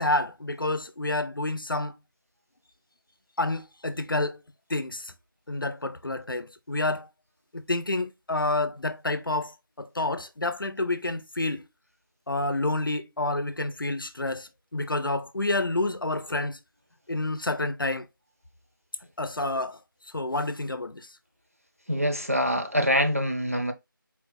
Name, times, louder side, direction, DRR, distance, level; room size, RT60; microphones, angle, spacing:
voice 1, 0.0-1.9 3.4-4.4 4.7-5.1 5.5-7.1 7.5-11.6 12.3-16.6 17.1-18.1 19.2-19.8 20.1-21.1, left 2 dB, 70° left, 0.6 m, -29 dB
voice 2, 21.9-23.7, equal, 40° right, 0.5 m, -25 dB
4.5 x 2.1 x 3.7 m
figure-of-eight pair, 180°, 12 cm